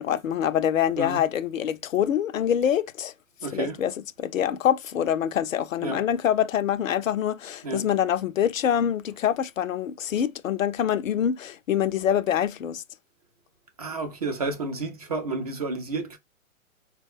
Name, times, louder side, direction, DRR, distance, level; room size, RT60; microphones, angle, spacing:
voice 1, 0.0-3.1 3.5-3.9 4.2-12.8, left 9 dB, 70° left, 0.5 m, -25 dB
voice 2, 3.4-3.8 5.8-6.0 7.6-7.9 13.8-16.2, right 3 dB, 30° right, 0.4 m, -31 dB
3.5 x 2.2 x 3.4 m
figure-of-eight pair, 120°, 41 cm